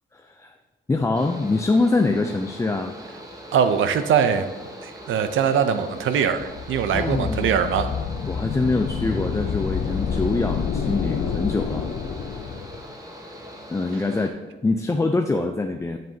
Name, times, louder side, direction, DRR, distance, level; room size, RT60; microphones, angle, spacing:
voice 1, 0.1-0.5 0.9-2.9 6.9-7.5 8.3-11.9 13.7-14.3 14.6-16.0, left 3 dB, 15° left, 5 dB, 0.3 m, -24 dB
Mechanical fan, 1.1-14.3, equal, 15° right, 0.9 m, -41 dB
voice 2, 3.5-4.5 4.8-7.9, right 7 dB, 80° right, 10 dB, 0.6 m, -22 dB
sound 1, 6.3-12.8, left 6 dB, 65° left, 0.6 m, -28 dB
7.8 x 7.5 x 2.8 m, 1.2 s
cardioid pair, 110°, 20 cm